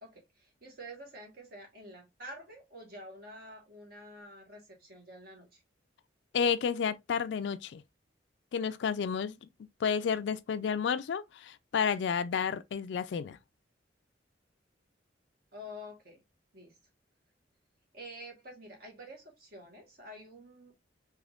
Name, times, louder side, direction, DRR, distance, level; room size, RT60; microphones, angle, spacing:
voice 1, 0.0-5.6 15.5-16.2 16.5-16.8 17.9-20.8, equal, 55° right, 1.2 m, -48 dB
voice 2, 6.3-7.8 8.5-9.4 9.8-13.4, left 6 dB, 65° left, 0.3 m, -31 dB
3.5 x 3.0 x 2.4 m
head